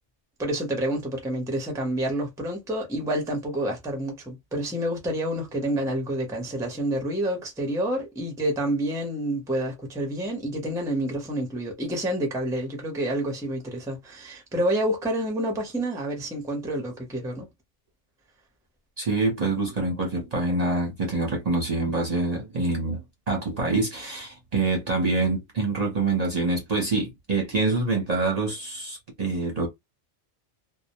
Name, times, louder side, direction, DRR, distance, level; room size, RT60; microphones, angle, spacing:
voice 1, 0.4-17.5, right 1 dB, 5° right, 0.6 m, -28 dB
voice 2, 19.0-29.7, right 3 dB, 40° right, 0.7 m, -26 dB
2.2 x 2.1 x 2.8 m
omnidirectional pair, 1.2 m